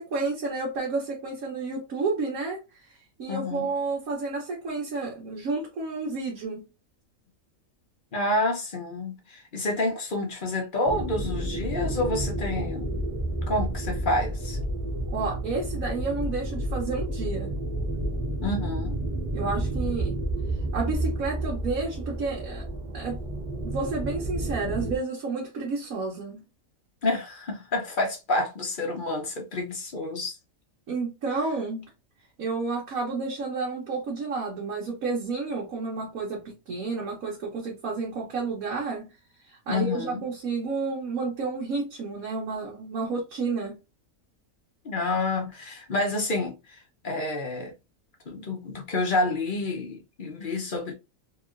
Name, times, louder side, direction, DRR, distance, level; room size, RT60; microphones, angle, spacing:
voice 1, 0.0-2.6 2.9-6.6 15.1-17.6 19.3-20.2 20.7-22.7 22.9-23.2 23.6-26.4 30.9-31.9 32.4-39.1 39.5-43.8, right 3 dB, 90° right, 1.3 m, -31 dB
voice 2, 3.3-3.7 8.1-12.9 13.5-14.6 18.4-19.0 27.0-30.3 39.7-40.2 44.8-46.8 47.0-47.7 48.3-50.9, left 2 dB, 45° left, 0.8 m, -28 dB
sound 1, 10.8-25.0, right 1 dB, 30° right, 0.8 m, -30 dB
2.9 x 2.9 x 2.4 m
omnidirectional pair, 1.4 m